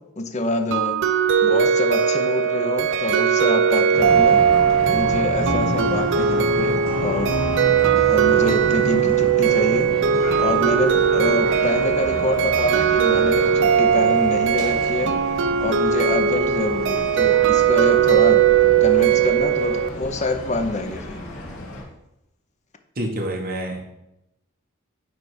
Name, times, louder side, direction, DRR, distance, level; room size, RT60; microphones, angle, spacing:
voice 1, 0.2-1.0 1.4-4.4 4.9-7.3 8.1-9.9 10.4-15.2 15.6-18.4 18.8-21.2, left 2 dB, 35° left, 7 dB, 0.6 m, -26 dB
sound 1, 0.7-19.9, right 8 dB, 60° right, 0.4 m, -19 dB
sound 2, 3.9-21.8, left 1 dB, 85° left, 2.2 m, -33 dB
sound 3, 5.4-15.9, left 2 dB, 65° left, 1.0 m, -34 dB
voice 2, 23.0-23.8, right 1 dB, 45° right, 2 dB, 1.2 m, -27 dB
9.4 x 3.3 x 4.8 m, 0.87 s
head